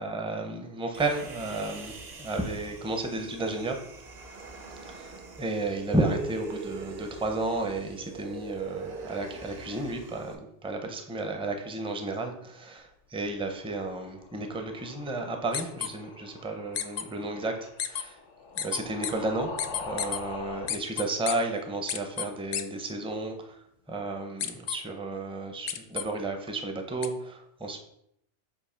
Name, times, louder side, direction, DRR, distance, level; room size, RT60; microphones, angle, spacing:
voice 1, 0.0-1.9 2.2-3.8 4.9-5.1 5.4-18.2 18.6-23.5 23.9-27.8, right 2 dB, 5° right, 4 dB, 0.5 m, -32 dB
Human voice, 0.9-10.3, right 3 dB, 45° right, 0.7 m, -42 dB
sound 1, 14.1-20.8, left 4 dB, 90° left, 1.1 m, -43 dB
sound 2, 15.5-15.9 16.8-17.0 17.8-18.0 18.6-19.1 19.6-20.2 20.7-21.3 21.9-22.3 22.5-22.6 24.4-24.8 25.7-26.0 27.0-27.1, left 9 dB, 60° left, 0.7 m, -30 dB
6.9 x 2.7 x 5.6 m, 0.76 s
omnidirectional pair, 1.2 m